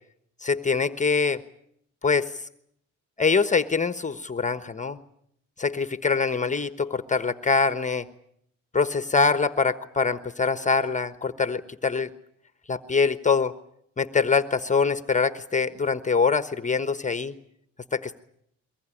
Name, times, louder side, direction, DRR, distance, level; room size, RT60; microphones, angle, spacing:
voice 1, 0.4-1.4 2.0-2.4 3.2-5.0 5.6-8.0 8.7-12.1 12.7-13.5 14.0-17.3 17.9-18.2, left 4 dB, 25° left, 11 dB, 1.2 m, -24 dB
23.5 x 18.5 x 10.0 m, 0.71 s
cardioid pair, 90°, 30 cm